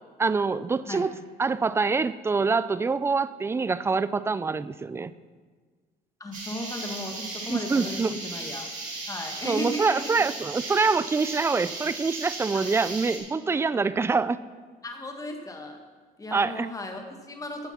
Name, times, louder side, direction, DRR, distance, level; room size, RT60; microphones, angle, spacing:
voice 1, 0.2-1.1 1.4-5.1 7.5-8.2 9.4-14.4 16.3-16.7, right 4 dB, 15° right, 16 dB, 0.4 m, -25 dB
voice 2, 6.2-8.7 9.1-10.2 12.5-12.6 14.8-15.8 16.2-17.7, left 1 dB, 20° left, 4 dB, 1.6 m, -36 dB
sound 1, 6.3-13.2, right 3 dB, 50° right, 3.8 m, -36 dB
15.5 x 5.7 x 5.8 m, 1.5 s
cardioid pair, 110°, 17 cm